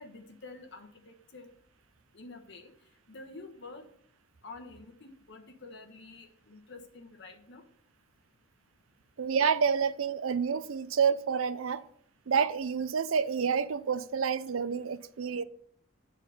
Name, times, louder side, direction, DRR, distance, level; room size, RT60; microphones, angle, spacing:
voice 1, 0.0-1.5 2.1-2.7 3.1-3.8 4.4-7.6, left 3 dB, 60° left, 1.3 m, -48 dB
voice 2, 9.2-11.8 12.3-15.4, right 6 dB, 85° right, 0.5 m, -28 dB
9.1 x 4.1 x 6.8 m
head